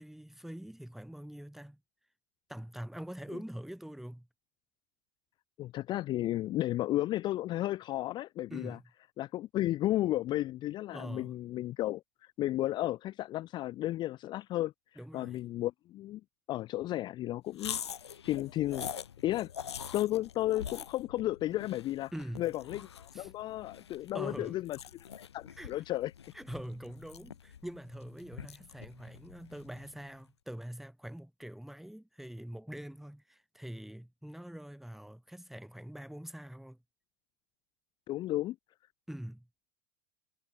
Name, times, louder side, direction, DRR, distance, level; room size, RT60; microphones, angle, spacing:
voice 1, 0.0-1.8 2.5-4.3 8.5-8.9 10.9-11.4 15.0-15.4 22.1-22.5 23.1-23.3 24.1-24.6 25.6-25.8 26.3-36.8 39.1-39.5, equal, ahead, 7.3 m, -44 dB
voice 2, 5.6-8.8 9.2-16.2 16.5-17.8 18.2-18.9 19.2-19.5 19.9-22.1 22.4-24.8 25.2-26.1 38.1-38.6, left 15 dB, 35° left, 0.4 m, -33 dB
sound 1, 17.5-30.0, left 8 dB, 85° left, 2.9 m, -45 dB
hypercardioid pair, 90°, 14 cm